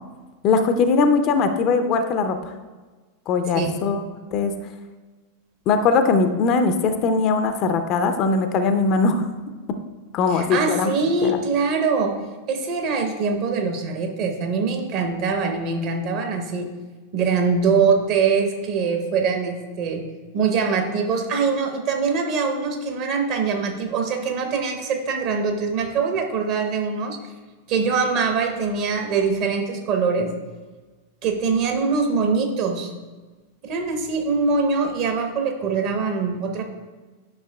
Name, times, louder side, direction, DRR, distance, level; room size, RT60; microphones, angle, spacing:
voice 1, 0.4-2.5 3.3-4.0 4.3-4.5 5.7-9.3 10.1-10.9 11.2-11.4, left 4 dB, 35° left, 8 dB, 0.5 m, -20 dB
voice 2, 10.3-12.2 12.5-16.7 17.1-20.0 20.3-27.2 27.7-30.3 31.2-32.9 33.6-36.6, right 5 dB, 45° right, 3 dB, 1.1 m, -23 dB
10.5 x 5.7 x 2.3 m, 1.3 s
figure-of-eight pair, 90°, 0 cm